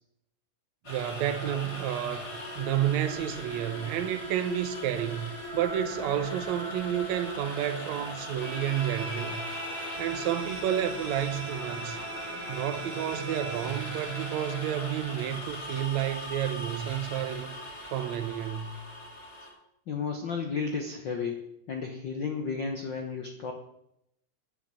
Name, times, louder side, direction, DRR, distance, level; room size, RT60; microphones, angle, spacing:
sound 1, 0.8-19.5, left 1 dB, 30° left, 4.9 m, -40 dB
voice 1, 0.9-9.4 10.0-12.0 12.5-17.5 17.9-18.8, right 11 dB, 70° right, 2.0 m, -30 dB
Bowed string instrument, 8.3-14.7, right 1 dB, 15° right, 1.3 m, -39 dB
voice 2, 19.9-23.5, left 5 dB, 80° left, 1.0 m, -33 dB
10.0 x 9.0 x 7.7 m
omnidirectional pair, 3.7 m